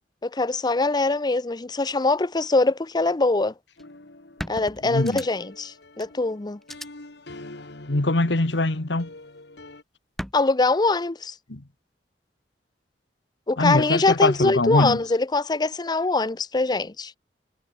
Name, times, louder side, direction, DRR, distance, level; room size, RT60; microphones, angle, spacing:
voice 1, 0.2-3.5 4.5-6.6 10.3-11.3 13.5-17.1, left 3 dB, 25° left, 0.7 m, -23 dB
sound 1, 3.8-9.8, left 2 dB, 70° left, 2.0 m, -45 dB
sound 2, 3.8-3.9 4.4-5.6 6.0-6.1 6.6-6.9 8.2-8.7 10.2-10.3, equal, ahead, 6.1 m, -36 dB
voice 2, 4.8-5.2 7.9-9.1 11.5-11.6 13.6-15.0, left 2 dB, 85° left, 1.6 m, -22 dB
head